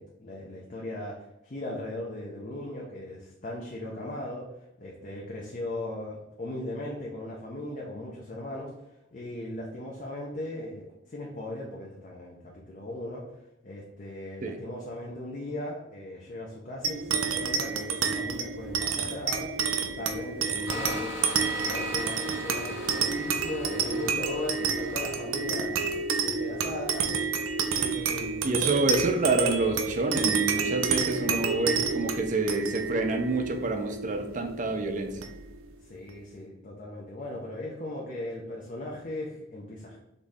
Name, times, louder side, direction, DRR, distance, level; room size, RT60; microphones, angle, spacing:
voice 1, 0.0-4.5 4.8-8.7 9.1-13.2 13.6-21.1 21.6-28.4 31.2-31.8 35.8-40.0, left 1 dB, 40° left, -2 dB, 0.6 m, -38 dB
sound 1, 16.8-35.7, right 5 dB, 90° right, 0.5 m, -29 dB
sound 2, 20.7-26.1, left 2 dB, 60° left, 1.2 m, -40 dB
voice 2, 28.4-35.1, right 3 dB, 40° right, 5 dB, 0.5 m, -28 dB
4.0 x 3.1 x 3.5 m, 0.88 s
head